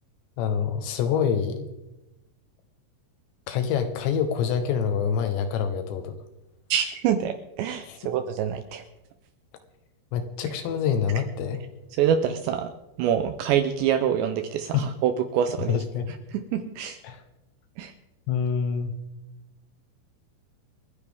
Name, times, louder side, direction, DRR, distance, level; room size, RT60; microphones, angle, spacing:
voice 1, 0.4-1.7 3.5-6.1 7.9-8.0 10.1-11.6 14.7-14.9 15.6-16.1 17.0-17.2 18.3-18.9, left 7 dB, 75° left, 8 dB, 2.9 m, -26 dB
voice 2, 6.7-8.8 12.0-12.7 13.0-15.8 16.3-17.0 17.8-17.9, right 9 dB, 80° right, 8 dB, 2.6 m, -25 dB
29.5 x 9.9 x 3.6 m, 0.98 s
omnidirectional pair, 5.8 m